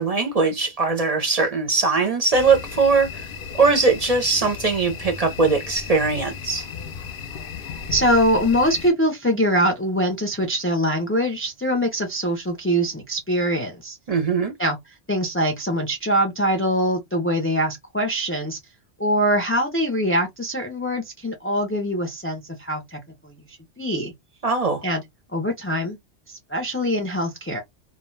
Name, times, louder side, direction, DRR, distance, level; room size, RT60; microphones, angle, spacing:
voice 1, 0.0-3.3 3.6-6.7 14.1-14.5 24.4-24.8, right 4 dB, 45° right, 0.5 m, -20 dB
sound 1, 2.3-8.9, left 6 dB, 60° left, 0.6 m, -35 dB
voice 2, 7.9-14.0 14.6-14.8 15.1-18.6 19.0-24.1 24.8-25.0 25.3-26.0 26.3-27.6, equal, 20° left, 0.3 m, -23 dB
2.2 x 2.2 x 3.1 m
omnidirectional pair, 1.2 m